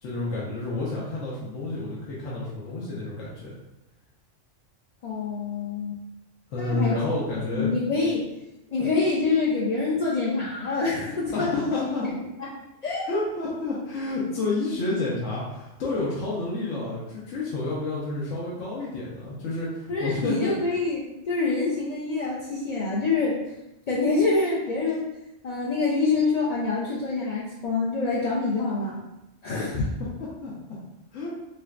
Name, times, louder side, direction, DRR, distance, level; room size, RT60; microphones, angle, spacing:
voice 1, 0.0-3.6 6.5-7.7 11.3-12.1 13.1-20.5 30.4-30.5 31.1-31.3, left 2 dB, 80° left, -6 dB, 1.1 m, -29 dB
voice 2, 5.0-6.0 6.6-6.9 7.5-8.3 8.7-11.9 12.4-12.5 12.8-13.1 19.9-23.4 23.9-25.0 25.4-29.0 29.4-29.9, left 3 dB, 55° left, -6 dB, 0.4 m, -26 dB
3.7 x 3.2 x 2.4 m, 0.92 s
omnidirectional pair, 1.3 m